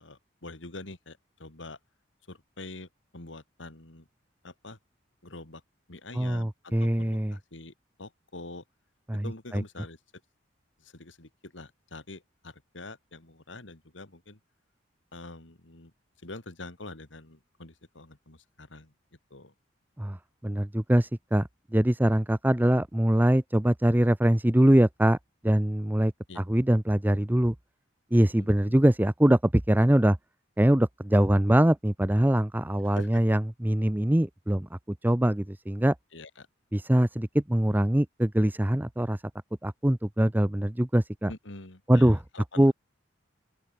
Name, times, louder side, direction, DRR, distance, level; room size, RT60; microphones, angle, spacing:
voice 1, 0.0-1.8 2.3-4.1 4.4-4.8 5.2-5.6 5.9-8.6 9.2-10.0 10.8-14.4 15.1-15.9 16.2-18.9 19.3-19.5 26.3-26.4 28.4-28.8 32.8-33.2 36.1-36.5 41.3-42.7, left 2 dB, 75° left, 2.8 m, -45 dB
voice 2, 6.2-7.3 9.1-9.2 9.5-9.6 20.0-20.2 20.4-25.2 25.4-27.5 28.1-30.2 30.6-35.9 36.7-39.2 39.6-41.3 41.9-42.2 42.6-42.7, right 1 dB, 10° right, 0.6 m, -23 dB
open air
head